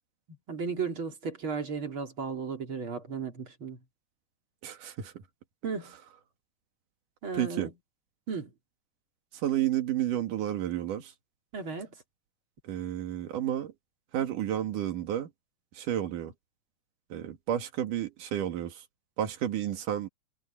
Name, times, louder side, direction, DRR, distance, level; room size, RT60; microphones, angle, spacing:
voice 1, 0.5-3.8 5.6-5.9 7.2-7.7 8.3-8.5 11.5-11.9, right 5 dB, 40° right, 3.5 m, -34 dB
voice 2, 4.6-5.2 7.3-7.7 9.3-11.1 12.6-13.7 14.1-15.3 15.7-16.3 17.1-18.8 19.2-20.1, right 11 dB, 80° right, 3.4 m, -31 dB
omnidirectional pair, 3.7 m